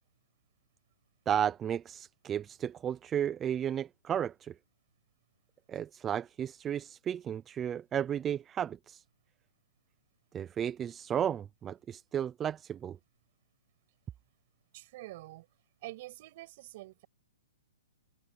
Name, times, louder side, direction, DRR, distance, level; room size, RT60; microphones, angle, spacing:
voice 1, 1.3-4.5 5.7-9.0 10.3-13.0, right 9 dB, 10° right, 0.3 m, -33 dB
voice 2, 14.7-15.5 15.8-17.1, right 18 dB, 35° right, 7.5 m, -46 dB
hypercardioid pair, 170°, 0 cm